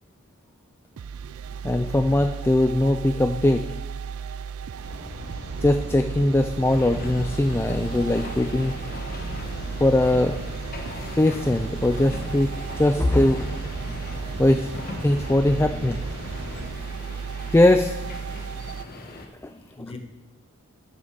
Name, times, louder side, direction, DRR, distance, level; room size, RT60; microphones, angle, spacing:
sound 1, 1.0-18.8, right 6 dB, 75° right, 0.4 m, -35 dB
voice 1, 1.6-3.7 5.6-8.8 9.8-10.4 11.2-13.8 14.4-14.7 15.0-16.0 17.5-17.9 19.4-19.5, left 1 dB, 10° left, 0.3 m, -21 dB
sound 2, 4.8-16.7, equal, 50° right, 2.2 m, -38 dB
sound 3, 6.6-19.3, left 2 dB, 45° left, 1.3 m, -40 dB
voice 2, 15.6-16.1 19.5-20.0, left 2 dB, 25° left, 1.2 m, -42 dB
13.0 x 7.1 x 5.1 m
head